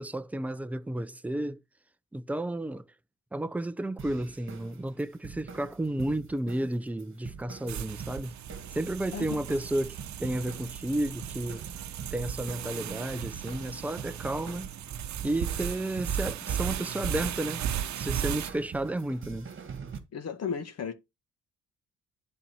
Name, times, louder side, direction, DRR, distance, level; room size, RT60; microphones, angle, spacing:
voice 1, 0.0-1.6 2.1-2.8 3.3-8.3 8.7-11.6 12.1-14.7 15.2-17.6 18.0-19.5, right 1 dB, 5° right, 0.5 m, -32 dB
sound 1, 4.0-20.0, right 6 dB, 40° right, 1.8 m, -45 dB
sound 2, 7.7-18.5, right 10 dB, 60° right, 0.8 m, -36 dB
voice 2, 9.1-9.4 20.1-20.9, left 6 dB, 55° left, 1.6 m, -34 dB
10.5 x 4.2 x 4.4 m
cardioid pair, 110°, 32 cm